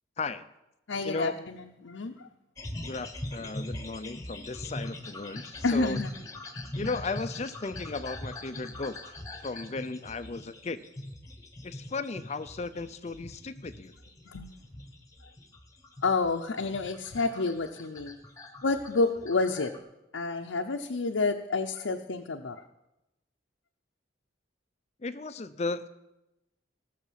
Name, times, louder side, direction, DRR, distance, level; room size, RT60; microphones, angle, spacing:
voice 1, 0.2-0.5 1.0-1.5 2.8-6.0 6.7-10.8 11.6-14.0 25.0-25.9, left 3 dB, 35° left, 12 dB, 0.5 m, -36 dB
voice 2, 0.9-2.3 5.6-6.1 14.2-14.5 16.0-18.2 18.6-19.7 20.1-22.6, left 3 dB, 90° left, 2 dB, 0.7 m, -29 dB
sound 1, 2.6-19.8, left 1 dB, 15° left, 1.1 m, -42 dB
17.5 x 6.6 x 7.4 m, 0.92 s
head